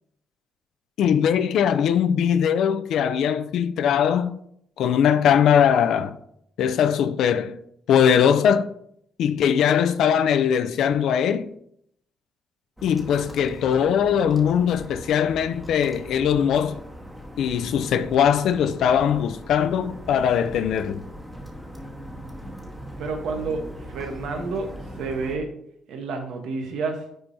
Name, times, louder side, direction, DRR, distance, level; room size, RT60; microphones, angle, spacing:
voice 1, 1.0-4.4 4.8-6.2 6.6-7.6 7.9-8.7 9.2-11.5 12.8-16.8 17.4-21.0, left 8 dB, 75° left, 0.4 m, -21 dB
sound 1, 12.8-25.4, equal, 5° right, 1.2 m, -40 dB
voice 2, 23.0-23.6 23.9-24.7 25.0-25.5 25.9-27.0, right 4 dB, 80° right, 1.0 m, -29 dB
9.1 x 4.5 x 2.7 m
cardioid pair, 90°, 0 cm